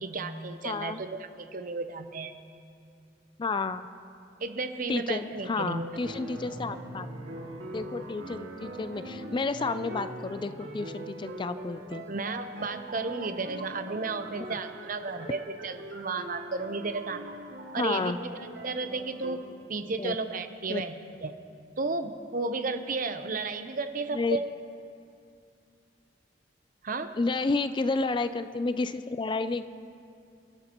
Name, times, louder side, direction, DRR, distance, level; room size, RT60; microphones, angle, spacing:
voice 1, 0.0-2.3 4.4-6.0 12.1-17.3 17.7-18.1 18.6-19.4 19.7-21.4 21.8-24.5 26.8-27.2, right 3 dB, 50° right, 8 dB, 0.8 m, -33 dB
voice 2, 0.6-1.0 3.4-3.9 4.9-7.1 7.4-12.0 17.8-18.2 20.0-20.2 20.7-20.8 24.1-24.4 27.2-29.7, left 3 dB, 25° left, 12 dB, 0.4 m, -31 dB
sound 1, 6.0-19.4, right 1 dB, 80° right, 2.2 m, -42 dB
29.5 x 12.5 x 3.0 m, 2.5 s
head